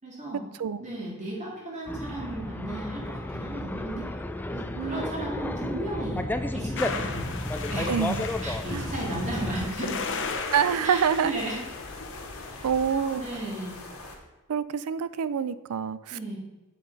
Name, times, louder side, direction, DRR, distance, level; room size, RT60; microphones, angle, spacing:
voice 1, 0.0-0.4 0.8-4.1 4.5-6.3 6.5-7.3 7.7-7.9 8.4-10.0 10.8-11.6 12.4-12.6 12.9-13.8 16.1-16.4, right 1 dB, 35° right, -4 dB, 2.5 m, -35 dB
sound 1, 1.9-9.7, left 1 dB, 10° left, 0.3 m, -32 dB
sound 2, 6.8-12.9, left 4 dB, 60° left, 0.8 m, -36 dB
sound 3, 7.1-14.1, left 2 dB, 80° left, 1.5 m, -43 dB
voice 2, 7.9-8.2 8.7-8.9 10.5-11.4 12.6-13.2 14.5-16.2, right 7 dB, 90° right, 16 dB, 0.4 m, -26 dB
7.7 x 7.5 x 4.0 m, 1.1 s
head